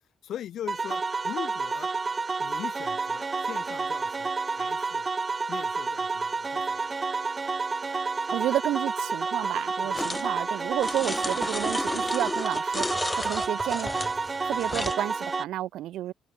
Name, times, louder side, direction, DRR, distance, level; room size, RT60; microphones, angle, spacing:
voice 1, 0.2-1.9 2.4-5.1 5.5-6.8 9.8-10.0, left 11 dB, 70° left, 2.1 m, -40 dB
sound 1, 0.7-15.4, right 4 dB, 30° right, 0.5 m, -30 dB
voice 2, 8.3-13.9 14.3-16.1, right 13 dB, 85° right, 0.3 m, -31 dB
metal lid drags on floor close, 9.9-10.3 10.8-15.0, left 2 dB, 15° left, 1.3 m, -33 dB
cardioid pair, 90°, 0 cm